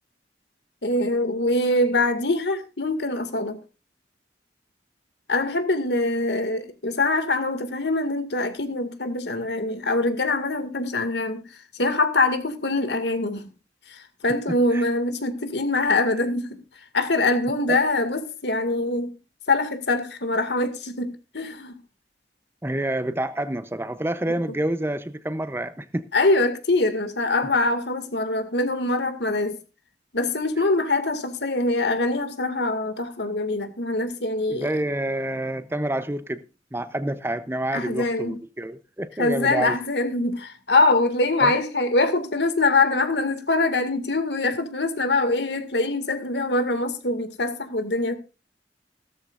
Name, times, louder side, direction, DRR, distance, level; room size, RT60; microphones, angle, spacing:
voice 1, 0.8-3.6 5.3-13.5 13.9-16.6 16.9-19.1 19.5-21.8 26.1-29.6 30.1-34.7 37.7-38.4 39.2-48.2, left 2 dB, 75° left, 2.2 m, -24 dB
voice 2, 14.5-14.8 17.7-17.8 22.6-26.1 34.5-36.4 36.7-39.8 41.4-41.5, right 1 dB, 15° right, 0.7 m, -28 dB
16.5 x 13.5 x 2.5 m
head